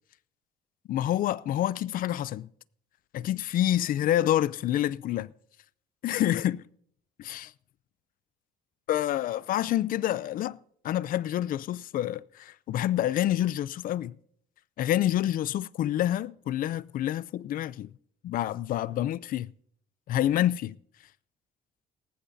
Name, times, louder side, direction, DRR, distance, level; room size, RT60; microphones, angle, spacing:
voice 1, 0.9-2.5 3.1-5.3 6.0-6.6 7.2-7.5 8.9-10.6 10.8-14.2 14.8-17.9 18.2-19.5 20.1-20.8, left 12 dB, 55° left, 0.5 m, -27 dB
18.5 x 15.0 x 2.7 m
cardioid pair, 110°, 17 cm